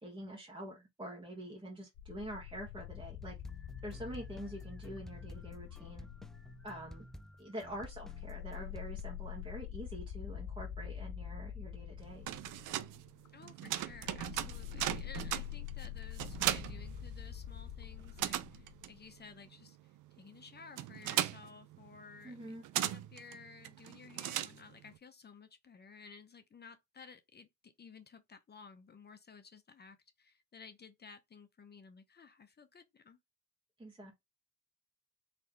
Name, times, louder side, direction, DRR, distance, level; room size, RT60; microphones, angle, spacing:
voice 1, 0.0-3.3 3.8-6.1 6.6-7.1 7.4-12.3 22.2-22.6 33.8-34.2, right 1 dB, 15° right, 1.6 m, -46 dB
sound 1, 2.0-7.1 7.6-19.2, left 10 dB, 70° left, 0.6 m, -46 dB
sound 2, 3.2-9.1, equal, ahead, 0.3 m, -53 dB
sound 3, 12.0-17.6 17.9-25.0, right 13 dB, 85° right, 0.6 m, -38 dB
voice 2, 13.3-33.2, left 5 dB, 35° left, 0.8 m, -55 dB
4.1 x 3.2 x 3.1 m
cardioid pair, 90°, 30 cm